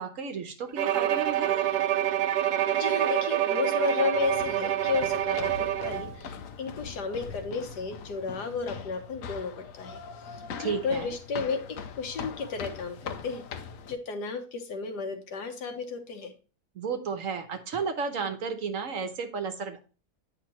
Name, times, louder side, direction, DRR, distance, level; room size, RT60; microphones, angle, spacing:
voice 1, 0.0-1.7 10.6-11.1 16.7-19.8, right 5 dB, 60° right, 7 dB, 1.2 m, -33 dB
Bowed string instrument, 0.8-6.1, right 12 dB, 80° right, 1.2 m, -27 dB
voice 2, 2.5-10.0 10.3-13.4 13.9-16.3, left 4 dB, 85° left, 5 dB, 1.8 m, -33 dB
sound 1, 4.1-13.9, left 6 dB, 60° left, 1.1 m, -41 dB
9.1 x 5.8 x 3.0 m, 0.35 s
omnidirectional pair, 1.7 m